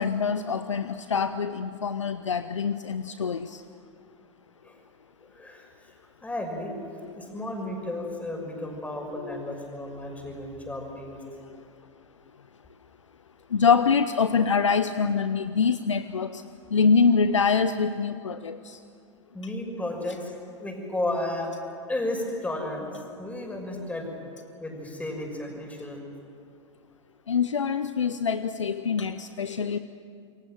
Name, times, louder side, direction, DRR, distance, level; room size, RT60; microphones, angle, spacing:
voice 1, 0.0-3.6 7.0-7.1 9.2-9.6 13.5-16.4 16.7-18.8 27.3-29.8, left 5 dB, 80° left, 12 dB, 0.8 m, -25 dB
voice 2, 5.3-5.9 6.2-6.7 7.2-11.2 19.3-21.5 21.9-22.9 23.2-24.1 24.6-26.0, left 1 dB, 10° left, 2 dB, 6.1 m, -33 dB
28.0 x 23.0 x 7.7 m, 2.4 s
figure-of-eight pair, 90°, 15 cm